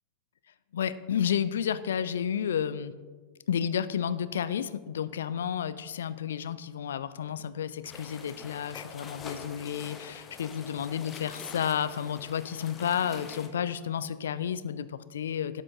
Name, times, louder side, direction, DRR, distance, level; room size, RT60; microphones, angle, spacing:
voice 1, 0.7-2.9 3.5-15.6, left 8 dB, 65° left, 15 dB, 0.3 m, -31 dB
sound 1, 7.8-13.5, left 5 dB, 25° left, 0.8 m, -45 dB
12.0 x 6.1 x 2.8 m, 1.4 s
figure-of-eight pair, 90°, 0 cm